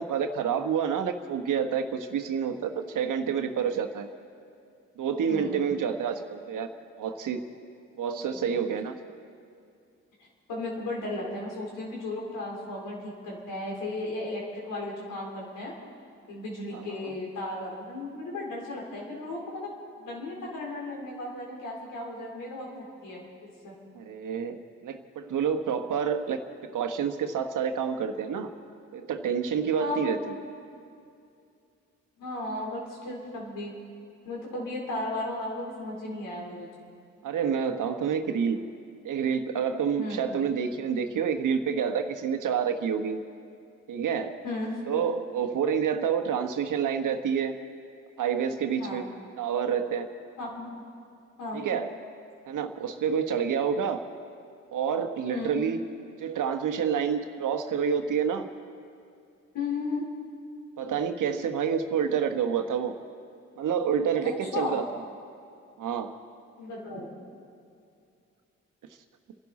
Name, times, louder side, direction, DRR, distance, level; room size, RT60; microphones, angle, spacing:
voice 1, 0.0-4.1 5.0-6.7 7.0-7.5 8.0-8.9 16.7-17.1 23.9-28.5 28.9-30.4 37.2-38.6 39.0-43.2 43.9-44.4 44.9-47.6 48.2-49.1 49.4-50.1 51.5-51.9 52.5-54.0 54.7-55.8 56.2-58.5 60.8-63.0 63.6-65.0 65.8-66.2, right 7 dB, 70° right, 6 dB, 1.3 m, -28 dB
voice 2, 5.3-5.8 8.3-8.4 10.5-15.7 16.3-19.7 20.0-23.2 23.6-23.7 29.8-30.1 32.2-33.7 34.2-36.7 40.0-40.2 44.4-44.7 48.8-49.0 50.4-50.8 51.4-51.6 55.3-55.5 59.5-60.1 64.2-64.8 66.6-67.1, left 2 dB, 80° left, -2 dB, 4.0 m, -35 dB
29.5 x 11.5 x 4.2 m, 2.5 s
supercardioid pair, 50°, 32 cm